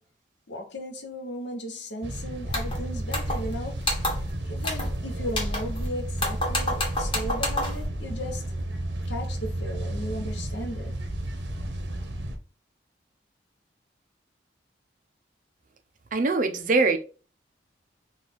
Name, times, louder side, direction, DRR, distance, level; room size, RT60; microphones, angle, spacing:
voice 1, 0.5-3.8 4.4-8.5 9.1-10.9, equal, 75° left, 1.0 m, -36 dB
brisk wayside at harbor, 2.0-12.4, right 1 dB, 70° right, 0.9 m, -33 dB
sound 1, 2.5-2.8 3.1-3.5 3.8-4.3 4.6-5.0 5.3-5.9 6.2-7.8, left 1 dB, 30° left, 1.2 m, -29 dB
voice 2, 16.1-17.0, right 3 dB, 45° right, 0.6 m, -22 dB
4.0 x 2.5 x 4.2 m
head